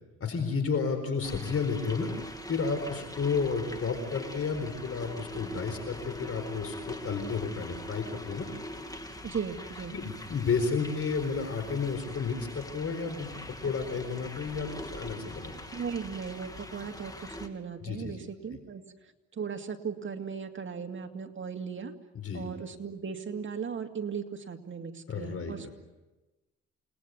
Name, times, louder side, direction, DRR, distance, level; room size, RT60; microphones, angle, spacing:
voice 1, 0.2-2.1 2.5-8.5 9.9-13.3 13.6-15.5 17.8-18.2 18.5-18.6 22.1-22.5 25.1-25.7, left 5 dB, 50° left, 8 dB, 4.3 m, -32 dB
sound 1, 1.2-17.5, left 1 dB, 10° left, 2.8 m, -43 dB
voice 2, 9.2-9.9 15.7-18.8 19.3-21.9 22.3-25.7, right 6 dB, 40° right, 5 dB, 2.3 m, -37 dB
29.0 x 20.0 x 9.5 m, 1.1 s
cardioid pair, 90°, 30 cm